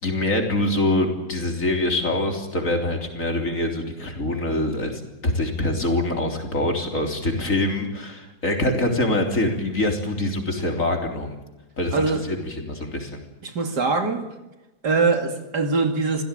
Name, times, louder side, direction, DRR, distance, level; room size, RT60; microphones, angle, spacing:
voice 1, 0.0-11.4 11.8-13.2, left 1 dB, 50° left, 3.9 m, -24 dB
voice 2, 11.9-12.2 13.4-14.3 14.8-16.2, right 4 dB, 75° right, 3.1 m, -22 dB
26.5 x 16.5 x 9.0 m
omnidirectional pair, 1.8 m